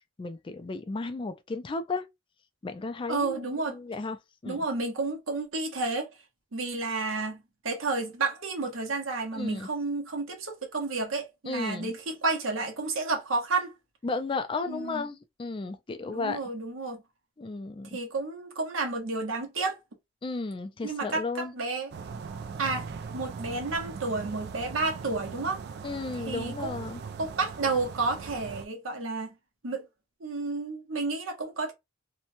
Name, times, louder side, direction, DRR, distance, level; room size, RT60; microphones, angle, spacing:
voice 1, 0.2-2.0 2.6-4.2 4.4-4.6 9.3-9.7 11.5-11.9 14.0-16.4 17.4-18.0 20.2-21.5 25.8-27.0, left 3 dB, 25° left, 0.3 m, -34 dB
voice 2, 3.1-3.8 4.5-6.1 6.5-13.7 14.7-15.1 16.1-17.0 17.9-19.8 20.8-21.9 22.6-22.9 23.1-25.6 26.3-26.9 27.2-29.3 29.6-29.9 30.2-31.7, right 3 dB, 75° right, 0.9 m, -31 dB
sound 1, 21.9-28.6, right 5 dB, 55° right, 0.3 m, -40 dB
2.9 x 2.2 x 2.6 m
head